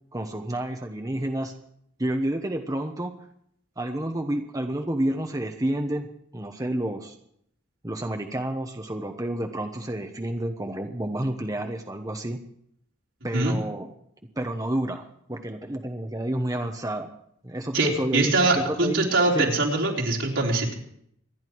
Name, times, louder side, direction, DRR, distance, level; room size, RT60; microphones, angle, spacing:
voice 1, 0.1-1.5 2.0-3.1 3.8-7.2 7.8-12.4 13.2-13.9 14.4-17.1 17.4-19.1 19.3-19.5, right 1 dB, 20° right, 4 dB, 1.0 m, -30 dB
voice 2, 17.7-20.7, right 2 dB, 75° right, -1 dB, 4.1 m, -23 dB
27.0 x 10.5 x 4.6 m, 0.70 s
head